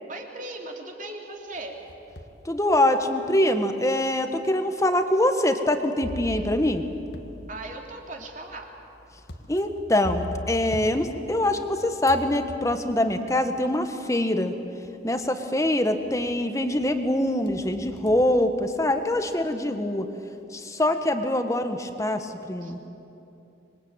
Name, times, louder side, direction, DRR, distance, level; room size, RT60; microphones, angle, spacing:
voice 1, 0.1-1.8 7.5-8.7 22.6-22.7, right 2 dB, 45° right, 1 dB, 3.1 m, -38 dB
sound 1, 1.5-2.4 3.0-3.1 4.0-4.1 6.0-11.7 12.0-13.1 14.2-14.3 14.8-15.3 15.6-16.4 16.8-19.2, left 1 dB, 60° left, 1.8 m, -40 dB
voice 2, 2.4-6.8 9.5-14.5 15.0-20.0 20.5-22.9, left 1 dB, 15° left, 7 dB, 1.4 m, -24 dB
26.0 x 22.0 x 9.0 m, 2.8 s
head